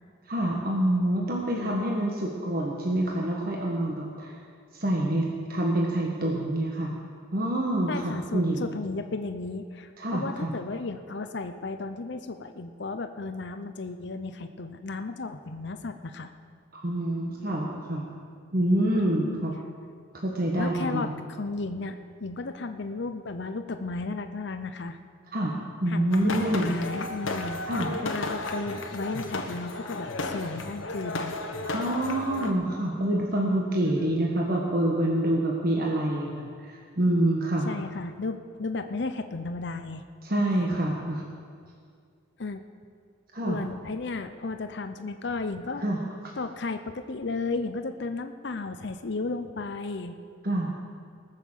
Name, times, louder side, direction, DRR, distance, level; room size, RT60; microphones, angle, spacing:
voice 1, 0.3-4.4 4.7-6.9 7.3-8.6 10.0-10.5 16.7-18.1 18.5-19.5 20.1-21.1 25.3-25.5 25.8-26.7 27.7-27.9 31.6-37.7 40.2-41.2 43.3-43.6 45.8-46.0 50.4-50.7, right 1 dB, 50° right, -2 dB, 1.4 m, -27 dB
voice 2, 1.5-1.8 7.9-16.3 18.9-19.4 20.6-21.1 21.4-25.0 25.9-27.6 28.0-31.3 33.8-34.2 37.7-40.0 42.4-42.6 43.5-45.9 46.4-50.2, left 3 dB, 60° left, 8 dB, 0.7 m, -34 dB
sound 1, 26.1-32.5, left 2 dB, 85° left, 1.2 m, -33 dB
19.5 x 6.7 x 7.4 m, 2.1 s
head